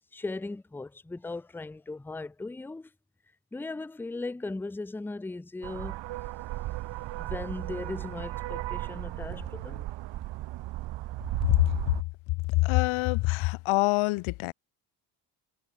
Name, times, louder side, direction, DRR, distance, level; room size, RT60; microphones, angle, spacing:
voice 1, 0.1-2.9 3.5-6.1 7.1-9.8, left 3 dB, 5° left, 0.5 m, -38 dB
sound 1, 5.6-12.0, right 17 dB, 65° right, 0.7 m, -35 dB
voice 2, 11.4-11.9 12.5-14.5, left 22 dB, 85° left, 0.6 m, -25 dB
cardioid pair, 85°, 47 cm